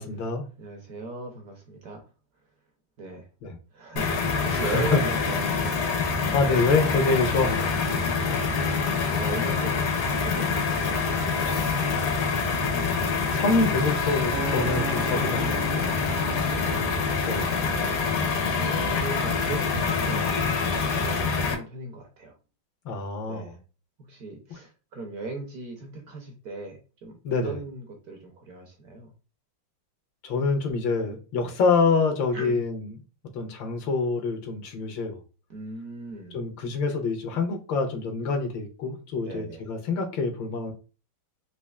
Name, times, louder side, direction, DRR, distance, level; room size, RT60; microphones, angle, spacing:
voice 1, 0.0-0.5 3.4-3.5 4.6-5.1 6.3-7.8 12.7-16.0 17.2-17.5 22.8-23.6 24.5-24.6 27.2-27.6 30.2-32.9 33.3-35.2 36.3-40.7, left 4 dB, 80° left, 1.4 m, -26 dB
voice 2, 0.6-2.0 3.0-3.3 3.7-5.9 7.9-11.4 15.1-15.3 16.1-18.1 18.4-22.3 23.3-23.6 24.1-27.2 27.4-29.1 31.4-31.6 32.3-32.6 35.5-36.4 39.2-39.7, right 3 dB, 65° right, 1.0 m, -38 dB
sound 1, 4.0-21.5, left 5 dB, 65° left, 0.9 m, -26 dB
Acoustic guitar, 14.3-18.7 19.3-19.5, right 8 dB, 80° right, 1.4 m, -39 dB
4.3 x 2.8 x 2.3 m
omnidirectional pair, 2.1 m